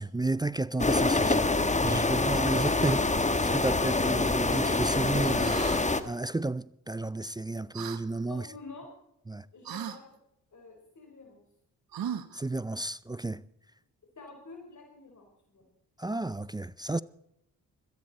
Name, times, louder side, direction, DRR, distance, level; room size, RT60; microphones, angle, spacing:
voice 1, 0.0-1.5 1.8-5.6 6.0-8.5 9.3-9.5 12.3-13.4 16.0-17.0, right 2 dB, 10° right, 0.4 m, -32 dB
sound 1, 0.8-6.0, left 2 dB, 20° left, 1.4 m, -26 dB
sound 2, 5.4-5.8 7.7-8.0 9.6-10.0 11.9-12.4, right 9 dB, 65° right, 1.3 m, -37 dB
voice 2, 8.3-8.9 9.5-10.1 10.5-11.4 14.2-15.6, left 3 dB, 50° left, 4.4 m, -47 dB
17.5 x 13.5 x 4.2 m
supercardioid pair, 55°, 38 cm